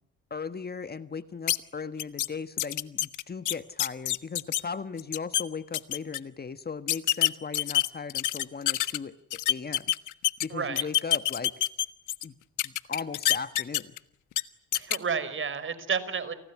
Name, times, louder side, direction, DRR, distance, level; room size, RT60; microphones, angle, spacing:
voice 1, 0.3-9.9 10.4-11.5 12.2-12.3 12.6-13.9, left 5 dB, 30° left, 11 dB, 1.5 m, -37 dB
sound 1, 1.5-1.6 2.0-2.3 2.6-4.6 5.0-5.4 5.7-6.2 6.9-9.0 9.3-10.5 10.8-12.2 12.6-14.0 14.3-14.4 14.7-15.0, left 14 dB, 80° left, 1.4 m, -26 dB
voice 2, 10.5-10.9 14.7-16.3, right 6 dB, 40° right, 14 dB, 5.3 m, -31 dB
29.5 x 29.0 x 6.0 m, 0.73 s
cardioid pair, 90°, 30 cm